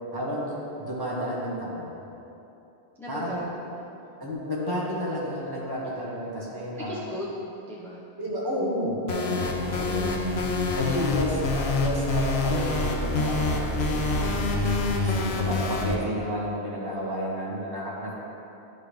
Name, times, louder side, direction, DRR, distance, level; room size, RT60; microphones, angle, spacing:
voice 1, 0.1-2.0 3.1-3.5 4.2-7.0 8.2-10.3 10.8-14.4 15.0-18.1, equal, 25° right, -6 dB, 1.3 m, -31 dB
voice 2, 3.0-4.0 6.7-8.1, left 1 dB, 5° left, -6 dB, 0.7 m, -38 dB
sound 1, 9.1-16.0, left 2 dB, 90° left, 1.0 m, -26 dB
11.5 x 4.0 x 3.4 m, 2.8 s
omnidirectional pair, 1.0 m